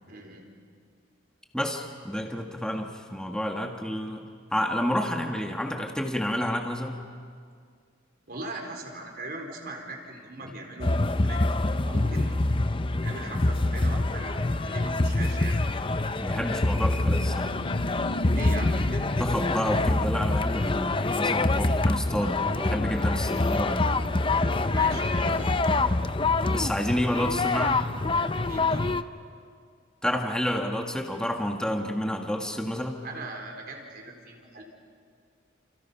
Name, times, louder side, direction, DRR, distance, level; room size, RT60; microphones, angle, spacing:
voice 1, 0.1-0.4 8.3-11.5 11.8-12.4 13.0-15.6 18.3-19.3 24.6-25.6 28.3-28.9 33.0-34.6, right 2 dB, 50° right, 2 dB, 4.3 m, -40 dB
voice 2, 1.5-7.0 16.2-17.6 19.2-23.8 26.5-27.9 30.0-33.0, equal, 5° left, 2 dB, 1.7 m, -29 dB
sound 1, 10.8-29.0, left 2 dB, 25° left, 0.6 m, -25 dB
Car passing by / Truck, 14.0-27.6, left 1 dB, 70° left, 1.6 m, -41 dB
30.0 x 29.5 x 5.7 m, 2.1 s
head